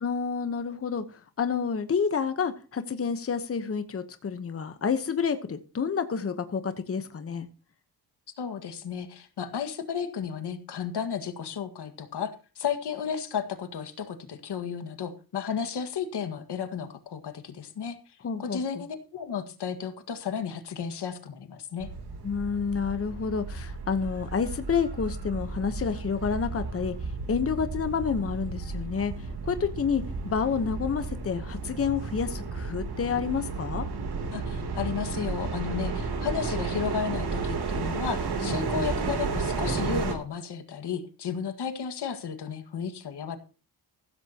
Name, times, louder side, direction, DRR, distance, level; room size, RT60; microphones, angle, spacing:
voice 1, 0.0-7.5 18.2-18.8 22.2-33.9 38.4-38.7, left 6 dB, 35° left, 9 dB, 1.0 m, -29 dB
voice 2, 8.4-18.0 18.4-21.9 34.3-43.4, left 7 dB, 80° left, 8 dB, 1.9 m, -33 dB
sound 1, 21.8-40.2, right 4 dB, 70° right, 3.2 m, -33 dB
15.5 x 13.5 x 2.9 m, 0.34 s
wide cardioid pair, 160°, 40 cm